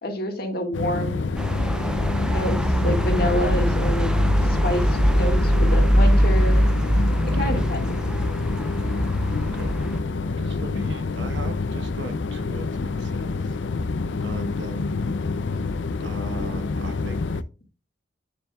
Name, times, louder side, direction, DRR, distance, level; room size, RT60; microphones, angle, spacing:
voice 1, 0.0-1.3 2.3-4.1 4.4-6.6 7.3-7.9, equal, 55° left, 4 dB, 1.8 m, -28 dB
sound 1, 0.7-17.4, left 3 dB, 75° left, 0.5 m, -27 dB
sound 2, 1.4-10.0, equal, 5° right, 0.4 m, -22 dB
voice 2, 7.2-7.7 8.8-9.0 9.3-9.8 10.3-13.6 14.2-15.0 16.0-17.2, right 2 dB, 70° right, 7 dB, 1.2 m, -39 dB
9.7 x 6.9 x 2.3 m, 0.33 s
head